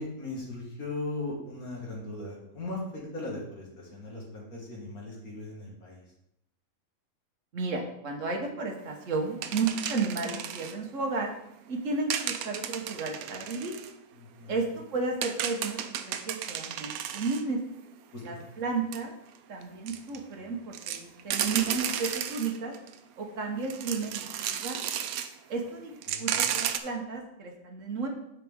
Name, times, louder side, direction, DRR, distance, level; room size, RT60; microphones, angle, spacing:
voice 1, 0.0-6.0 14.2-14.6 18.1-18.2 26.1-26.4, left 2 dB, 80° left, -3 dB, 2.5 m, -38 dB
voice 2, 7.5-11.3 11.7-13.7 14.5-14.6 14.9-15.8 16.1-17.6 18.2-19.1 19.5-22.7 23.2-24.8 25.5-25.9 26.2-28.1, right 4 dB, 60° right, 3 dB, 1.5 m, -33 dB
sound 1, 9.4-10.8 12.1-13.9 14.5-14.6 14.9-17.4 18.3-18.4 18.9-19.0 19.6-20.2 20.7-23.0 23.6-25.3 25.7-25.8 26.0-26.8, right 9 dB, 80° right, 1.0 m, -33 dB
9.3 x 5.0 x 3.6 m, 0.79 s
omnidirectional pair, 1.5 m